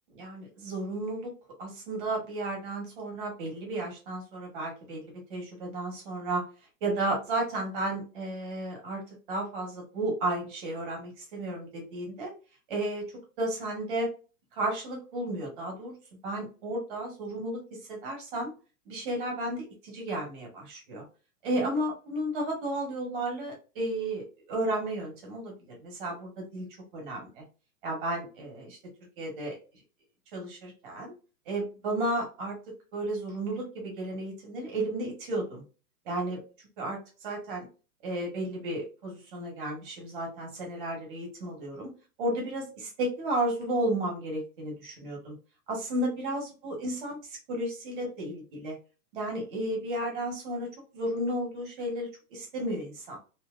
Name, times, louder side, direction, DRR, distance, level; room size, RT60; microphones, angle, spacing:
voice 1, 0.1-1.3 1.6-6.4 6.8-9.0 9.3-12.3 12.7-13.0 13.4-14.1 14.6-16.0 16.2-18.5 18.9-21.0 21.4-25.5 25.8-26.7 26.9-27.4 27.8-28.8 29.2-29.6 30.3-31.1 31.5-32.6 32.9-35.6 36.0-36.4 36.8-37.7 38.0-41.9 42.2-45.4 45.7-47.2 47.5-48.8 49.1-50.7 50.9-53.2, right 1 dB, 35° right, 0 dB, 1.2 m, -33 dB
2.9 x 2.6 x 2.4 m, 0.33 s
hypercardioid pair, 165°, 45 cm